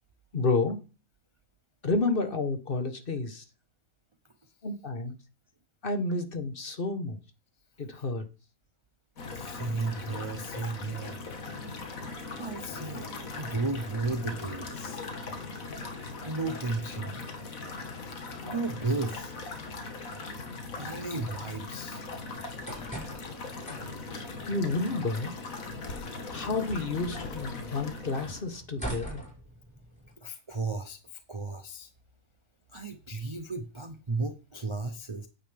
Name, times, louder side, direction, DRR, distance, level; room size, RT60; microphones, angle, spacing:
voice 1, 0.3-0.8 1.8-3.4 4.6-5.1 5.8-7.2 7.8-8.3 19.6-19.9 24.4-25.3 26.3-29.2, left 3 dB, 40° left, 1.3 m, -30 dB
sound 1, 9.2-28.4, left 3 dB, 70° left, 1.9 m, -39 dB
voice 2, 9.3-11.2 12.4-13.1 13.4-15.0 16.2-17.2 18.1-19.3 19.9-20.5 20.8-22.0 30.2-31.9 32.7-35.3, right 3 dB, 40° right, 0.4 m, -34 dB
sound 2, 22.4-30.1, right 1 dB, 5° left, 5.7 m, -44 dB
8.9 x 8.0 x 3.4 m
omnidirectional pair, 1.5 m